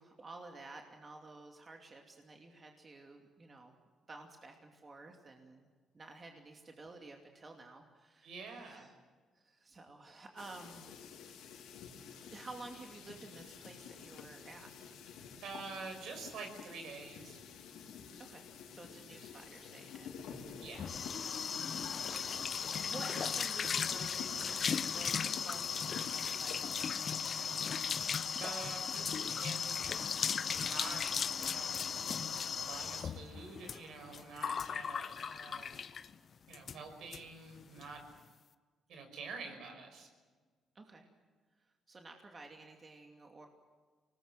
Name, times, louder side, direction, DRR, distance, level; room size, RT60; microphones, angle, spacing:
voice 1, 0.0-3.8 4.1-5.7 5.9-8.9 9.3-10.9 12.3-14.9 18.2-20.2 21.6-27.8 40.7-41.1 41.9-43.5, right 3 dB, 35° right, 2 dB, 2.6 m, -52 dB
voice 2, 8.2-8.9 15.4-17.4 20.6-20.9 28.4-30.0 30.4-31.9 32.6-35.8 36.5-38.0 38.9-40.1, right 4 dB, 75° right, 5 dB, 5.9 m, -47 dB
sound 1, 10.4-26.6, left 7 dB, 85° left, 3.6 m, -50 dB
sound 2, 20.4-36.1 36.5-36.8 37.1-37.2 37.5-37.9, left 6 dB, 50° left, 0.9 m, -37 dB
24.0 x 19.5 x 7.6 m, 1.5 s
cardioid pair, 85°, 0 cm